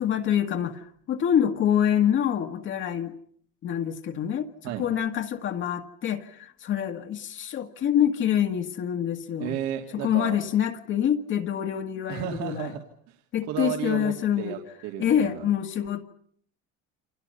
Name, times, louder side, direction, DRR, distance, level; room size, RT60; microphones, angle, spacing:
voice 1, 0.0-3.1 3.6-9.6 9.9-12.7 13.3-14.6 15.0-16.0, left 9 dB, 40° left, 5 dB, 1.8 m, -26 dB
voice 2, 9.4-10.4 12.1-13.2 13.5-15.5, right 11 dB, 70° right, 3 dB, 3.0 m, -33 dB
29.5 x 26.5 x 5.6 m, 0.62 s
cardioid pair, 155°, 29 cm